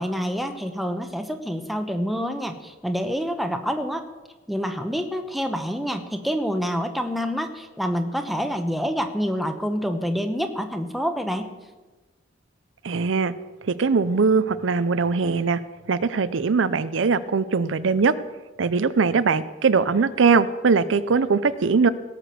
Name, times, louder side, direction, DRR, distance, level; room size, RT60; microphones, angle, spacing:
voice 1, 0.0-4.0 4.5-11.5, equal, ahead, 6 dB, 0.9 m, -27 dB
voice 2, 12.8-13.3 13.6-15.6 15.9-18.1 18.6-21.9, right 4 dB, 90° right, 14 dB, 0.6 m, -21 dB
17.5 x 6.0 x 6.7 m, 1.2 s
head